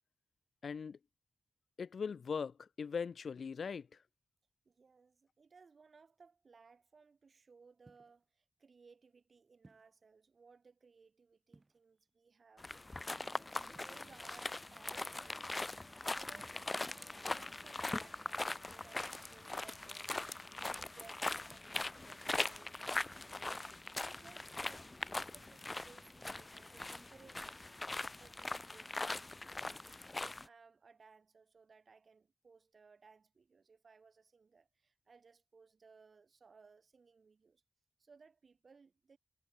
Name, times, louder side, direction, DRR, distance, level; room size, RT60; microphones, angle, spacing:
voice 1, 0.6-1.0 1.8-3.9, left 6 dB, 85° left, 0.6 m, -40 dB
voice 2, 4.6-15.7 16.1-16.6 16.9-20.2 20.7-22.8 23.3-23.6 23.9-27.7 28.2-37.6 38.0-39.2, right 5 dB, 70° right, 6.7 m, -63 dB
sound 1, 7.9-8.3 9.6-10.1 11.5-12.1 13.7-14.5 16.3-16.9 18.9-19.2 21.5-22.0 24.2-24.6, right 2 dB, 40° right, 4.2 m, -65 dB
sound 2, 12.6-30.5, left 2 dB, 35° left, 0.9 m, -41 dB
Wind instrument woodwind instrument, 14.7-23.8, equal, ahead, 2.3 m, -66 dB
cardioid pair, 50°, 0 cm